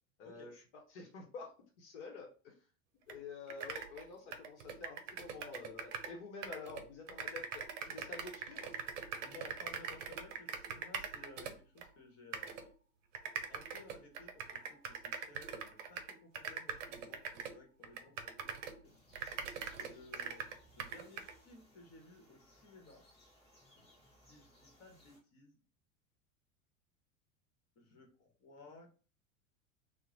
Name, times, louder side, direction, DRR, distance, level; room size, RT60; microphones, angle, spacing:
voice 1, 0.2-0.6 0.9-2.5 3.1-8.7 19.7-19.9, left 4 dB, 55° left, 1 dB, 0.9 m, -49 dB
sound 1, 3.1-3.2 3.5-6.2 6.4-11.9 12.3-12.7 13.1-18.8 19.1-21.4, right 6 dB, 65° right, 0.6 m, -43 dB
voice 2, 9.2-12.7 13.5-18.5 18.8-18.9 19.7-20.5 20.7-23.0 23.8-23.9 24.2-25.6 27.8-28.9, left 3 dB, 40° left, 1 dB, 1.1 m, -57 dB
sound 2, 18.8-25.2, left 1 dB, 15° left, 1.2 m, -65 dB
2.9 x 2.1 x 3.7 m, 0.37 s
figure-of-eight pair, 80°, 41 cm